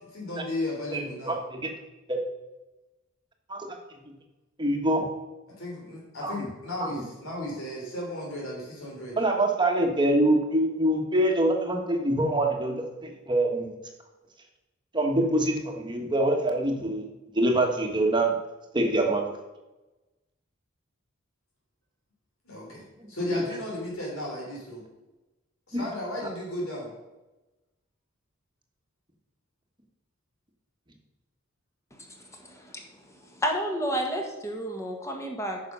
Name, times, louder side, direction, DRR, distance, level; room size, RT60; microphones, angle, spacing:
voice 1, 0.1-1.4 5.6-9.2 22.4-24.8 25.7-26.9, left 1 dB, 80° left, -3 dB, 3.2 m, -35 dB
voice 2, 0.9-1.7 2.1-2.2 3.5-3.7 4.6-5.1 6.2-6.5 6.8-6.9 9.2-13.7 14.9-17.1 17.3-18.3 18.7-19.3 23.2-23.4 25.7-25.8, right 1 dB, 20° right, 2 dB, 1.4 m, -25 dB
voice 3, 32.2-35.6, equal, 15° left, 2 dB, 1.5 m, -31 dB
9.3 x 6.2 x 5.5 m, 1.1 s
head